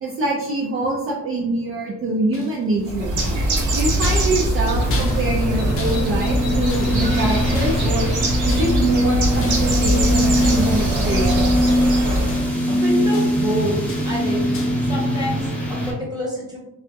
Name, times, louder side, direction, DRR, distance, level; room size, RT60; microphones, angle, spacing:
voice 1, 0.0-3.2 3.7-8.1 8.4-11.5, right 2 dB, 45° right, -3 dB, 0.5 m, -24 dB
sound 1, 2.3-2.8 3.2-7.2 7.5-8.1 8.5-9.0 9.4-9.8 10.4-10.9 11.3-11.8 12.0-12.7 13.1-13.5 13.9-14.2 14.5-14.9, left 3 dB, 45° left, 0.5 m, -36 dB
Bird, 2.8-12.5, right 1 dB, 75° right, 0.8 m, -22 dB
sound 2, 4.8-15.9, equal, 5° left, 0.7 m, -22 dB
voice 2, 12.7-13.7 14.0-14.5 14.9-16.6, equal, 15° right, -4 dB, 1.0 m, -27 dB
2.3 x 2.0 x 2.7 m, 0.90 s
cardioid pair, 90°, 30 cm